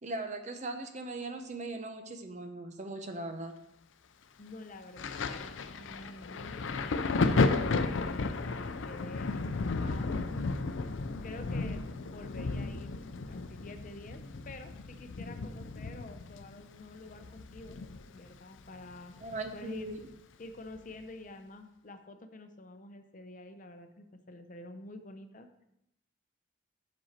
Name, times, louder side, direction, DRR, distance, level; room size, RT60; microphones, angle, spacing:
voice 1, 0.0-3.6 19.2-20.1, right 2 dB, 35° right, 7 dB, 0.7 m, -39 dB
voice 2, 4.4-7.3 7.5-10.1 11.2-11.8 12.1-12.9 13.3-17.8 18.1-19.9 20.4-25.6, left 2 dB, 40° left, 7 dB, 0.7 m, -48 dB
Thunder, 5.0-18.3 18.6-19.9 20.8-20.9, left 3 dB, 75° left, 0.5 m, -33 dB
7.7 x 6.1 x 4.3 m, 0.81 s
head